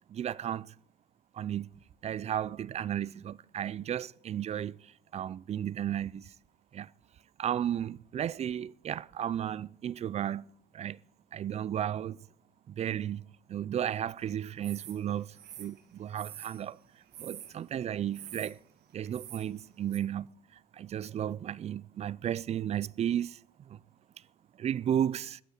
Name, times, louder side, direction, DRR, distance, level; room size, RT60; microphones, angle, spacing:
voice 1, 0.1-0.7 1.3-6.3 6.7-6.9 7.4-10.4 10.7-11.0 11.3-12.2 12.7-13.2 13.5-16.8 17.2-18.6 18.9-20.3 20.7-23.4 23.7-23.8 24.6-25.4, right 10 dB, 40° right, 0.4 m, -34 dB
sound 1, 14.6-15.0 15.3-16.6 17.1-17.6 18.1-18.5 19.1-19.5 19.9-20.0, right 11 dB, 70° right, 2.1 m, -46 dB
13.0 x 8.0 x 8.8 m
cardioid pair, 110°, 17 cm